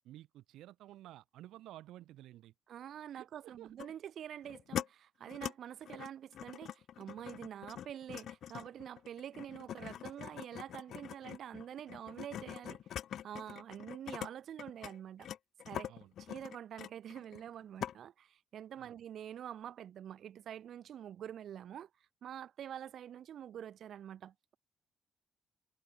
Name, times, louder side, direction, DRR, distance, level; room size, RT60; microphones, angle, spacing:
voice 1, 0.1-2.5 3.1-3.8 15.9-16.1 18.8-18.9, right 14 dB, 85° right, 0.7 m, -53 dB
voice 2, 2.7-12.8 13.2-15.3 15.7-15.9 16.2-21.9 22.2-24.6, right 10 dB, 65° right, 2.5 m, -46 dB
sound 1, 3.8-3.9 4.4-4.9 5.3-5.5 5.9-14.3 14.6-17.5 17.8-18.0, left 10 dB, 70° left, 0.7 m, -44 dB
cardioid pair, 90°, 0 cm